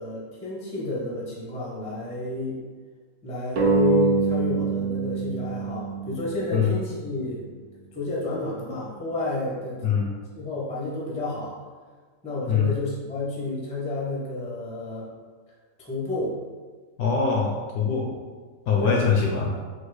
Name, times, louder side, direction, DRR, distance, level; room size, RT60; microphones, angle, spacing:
voice 1, 0.0-2.6 3.2-7.4 7.9-9.8 10.3-11.5 12.2-15.1 15.8-16.3 18.8-19.0, left 2 dB, 10° left, -5 dB, 0.4 m, -30 dB
sound 1, 3.6-6.8, right 4 dB, 65° right, 0.9 m, -25 dB
voice 2, 17.0-18.1 18.7-19.6, left 6 dB, 70° left, -1 dB, 0.9 m, -23 dB
4.5 x 2.2 x 4.7 m, 1.5 s
omnidirectional pair, 1.9 m